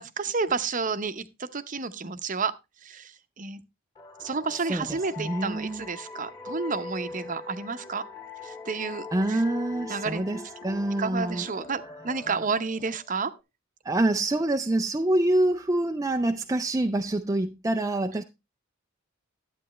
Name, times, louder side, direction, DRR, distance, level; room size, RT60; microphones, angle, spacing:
voice 1, 0.0-2.5 2.8-3.1 3.4-3.6 4.2-8.1 8.4-9.4 9.9-10.2 11.0-13.3, right 4 dB, 40° right, 0.8 m, -30 dB
sound 1, 4.0-13.4, left 3 dB, 15° left, 1.7 m, -42 dB
voice 2, 4.5-5.9 9.1-11.5 13.8-18.2, right 1 dB, 15° right, 0.4 m, -26 dB
11.5 x 8.8 x 3.1 m
head